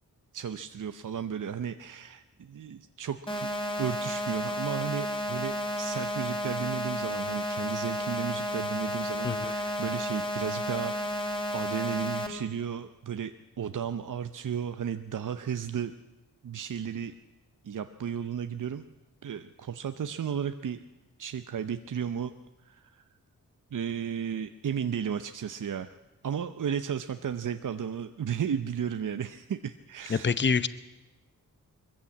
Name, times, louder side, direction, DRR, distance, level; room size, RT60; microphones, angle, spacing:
voice 1, 0.3-3.5 3.8-15.9 16.4-17.1 17.6-18.8 19.2-20.8 21.2-22.3 22.6-23.0 23.7-25.9 26.2-30.4, right 8 dB, 65° right, 9 dB, 0.8 m, -34 dB
sound 1, 3.3-12.3, equal, 15° left, 3.5 m, -32 dB
voice 2, 30.1-30.7, left 5 dB, 35° left, 15 dB, 0.8 m, -26 dB
21.0 x 14.5 x 8.5 m, 1.1 s
cardioid pair, 65°, 34 cm